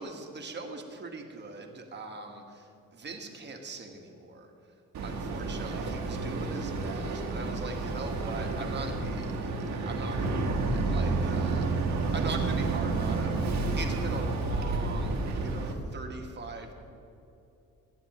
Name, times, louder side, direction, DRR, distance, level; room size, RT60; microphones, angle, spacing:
voice 1, 0.0-4.5 5.0-9.4 9.8-16.7, right 3 dB, 35° right, 3 dB, 1.5 m, -41 dB
Boat Water vehicle, 4.9-15.7, right 3 dB, 70° right, 1.4 m, -30 dB
15.5 x 9.1 x 3.0 m, 2.8 s
cardioid pair, 90°, 30 cm